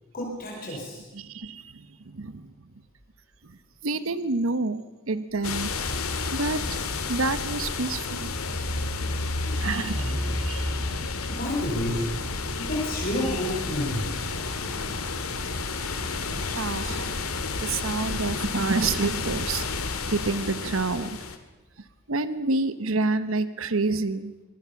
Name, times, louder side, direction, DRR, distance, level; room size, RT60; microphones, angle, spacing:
voice 1, 0.1-1.0 9.6-10.4 11.3-12.0 12.6-14.1, left 1 dB, 40° left, -2 dB, 4.9 m, -30 dB
voice 2, 1.1-2.5 3.8-5.7 6.3-6.8 7.1-8.9 9.5-10.8 14.7-14.9 16.0-17.1 17.6-19.6 20.1-21.2 22.1-24.3, right 3 dB, 70° right, 13 dB, 0.9 m, -29 dB
sound 1, 5.4-21.4, left 3 dB, 90° left, 2.1 m, -31 dB
24.5 x 18.5 x 7.0 m, 1.1 s
head